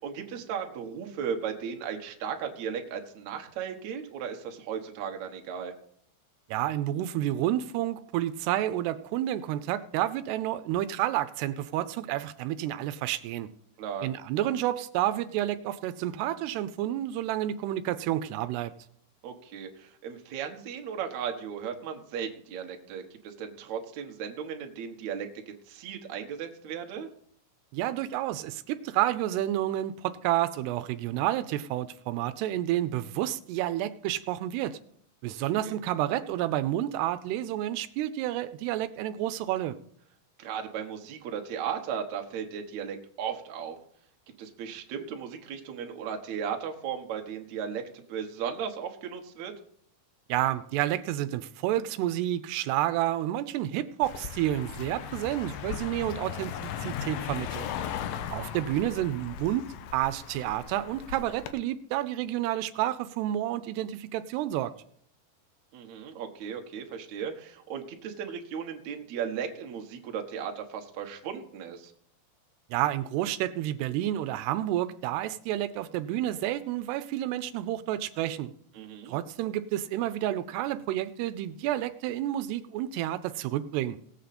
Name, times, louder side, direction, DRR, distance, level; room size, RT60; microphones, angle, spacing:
voice 1, 0.0-5.7 13.8-14.1 19.2-25.3 25.7-27.1 35.5-35.8 40.4-43.8 44.4-49.5 65.7-71.9 78.7-79.2, right 7 dB, 60° right, 3 dB, 2.2 m, -36 dB
voice 2, 6.5-13.5 14.0-18.7 27.7-34.8 35.2-39.8 50.3-57.7 58.3-59.7 59.9-64.7 72.7-78.5 79.1-84.0, right 13 dB, 85° right, 12 dB, 2.7 m, -30 dB
Car passing by, 54.0-61.5, left 9 dB, 75° left, 2.3 m, -37 dB
18.5 x 8.0 x 4.2 m, 0.64 s
omnidirectional pair, 4.7 m